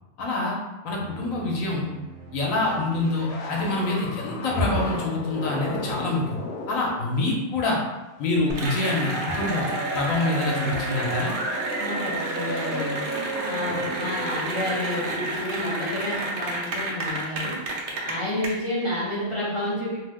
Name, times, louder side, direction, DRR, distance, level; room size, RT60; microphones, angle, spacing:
voice 1, 0.2-0.6 0.8-1.9 2.3-6.4 6.7-7.8 8.2-9.7 9.9-11.3, left 2 dB, 90° left, -2 dB, 1.1 m, -26 dB
sound 1, 1.0-4.7, right 4 dB, 75° right, 1.0 m, -45 dB
sound 2, 2.6-7.9 8.5-8.8 9.2-10.9 11.5-11.8 12.1-13.9 14.2-15.3 17.0-17.2, left 3 dB, 65° left, 0.8 m, -38 dB
Cheering / Applause, 8.5-18.5, right 2 dB, 55° right, 0.6 m, -29 dB
voice 2, 11.8-13.0 13.4-17.6 18.0-20.0, left 1 dB, 50° left, -8 dB, 0.4 m, -30 dB
2.8 x 2.0 x 3.4 m, 1.1 s
omnidirectional pair, 1.4 m